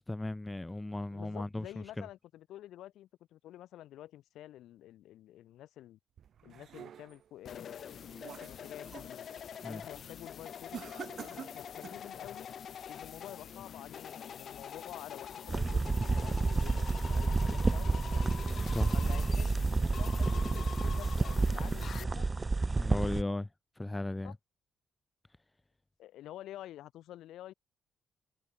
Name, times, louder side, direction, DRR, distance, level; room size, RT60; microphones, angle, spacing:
voice 1, 0.0-1.7 2.0-2.1 9.6-9.8 18.7-18.9 22.7-23.5 23.8-24.4, left 2 dB, 15° left, 1.5 m, -36 dB
voice 2, 1.1-6.0 6.4-9.3 9.6-12.5 12.8-18.3 18.9-19.7 19.9-22.3 24.2-24.3 26.0-27.5, left 13 dB, 80° left, 6.8 m, -49 dB
sound 1, 6.2-7.3 7.8-9.1 9.5-9.9 10.7-12.1, right 9 dB, 60° right, 1.2 m, -48 dB
sound 2, 7.4-22.0, left 8 dB, 55° left, 2.9 m, -45 dB
sound 3, 15.5-23.2, right 3 dB, 25° right, 0.6 m, -30 dB
cardioid pair, 90°, 0 cm